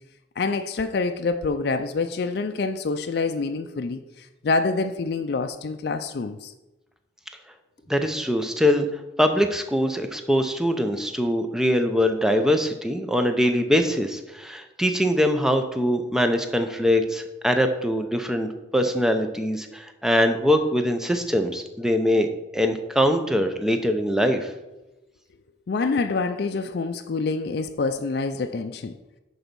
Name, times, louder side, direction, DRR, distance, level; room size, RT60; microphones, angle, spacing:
voice 1, 0.4-6.5 25.7-29.0, left 4 dB, 60° left, 6 dB, 0.4 m, -26 dB
voice 2, 7.9-24.5, equal, 5° right, 6 dB, 0.6 m, -23 dB
10.5 x 4.0 x 5.3 m, 1.0 s
head